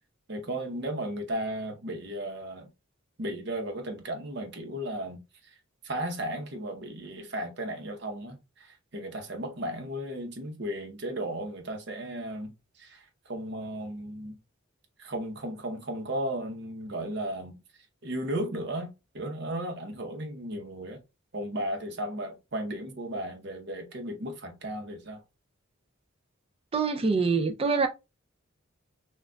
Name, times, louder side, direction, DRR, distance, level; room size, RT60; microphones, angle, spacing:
voice 1, 0.3-2.7 3.2-5.2 5.8-8.4 8.9-12.5 12.8-13.0 13.3-14.4 15.0-17.5 18.0-21.0 21.3-25.2, right 1 dB, 55° right, 0.8 m, -35 dB
voice 2, 26.7-27.9, right 4 dB, 30° right, 0.4 m, -25 dB
6.1 x 2.3 x 2.2 m
head